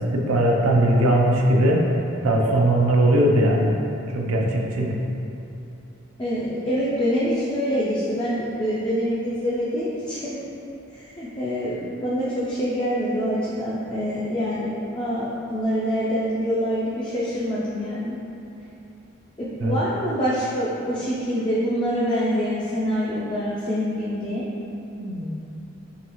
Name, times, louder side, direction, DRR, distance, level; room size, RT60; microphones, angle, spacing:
voice 1, 0.0-1.8 2.2-3.8 4.1-5.0 19.6-19.8 25.0-25.3, right 1 dB, 90° right, 0 dB, 0.5 m, -20 dB
voice 2, 6.2-10.4 10.9-18.2 19.4-24.4, equal, 20° left, -9 dB, 0.4 m, -25 dB
3.8 x 3.3 x 3.0 m, 2.7 s
head